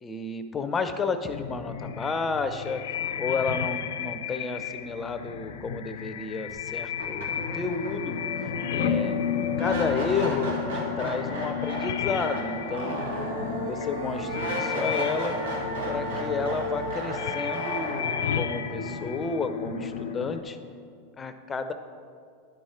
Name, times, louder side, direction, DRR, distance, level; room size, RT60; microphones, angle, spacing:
voice 1, 0.0-2.8 3.2-9.2 9.6-13.0 13.6-15.4 15.8-20.6 21.2-21.7, left 4 dB, 20° left, 9 dB, 0.6 m, -31 dB
sound 1, 1.3-20.4, left 8 dB, 75° left, 0.5 m, -32 dB
sound 2, 6.5-6.6 7.0-20.0, right 1 dB, 85° right, 1.5 m, -34 dB
10.0 x 4.7 x 4.3 m, 2.2 s
hypercardioid pair, 100°, 0 cm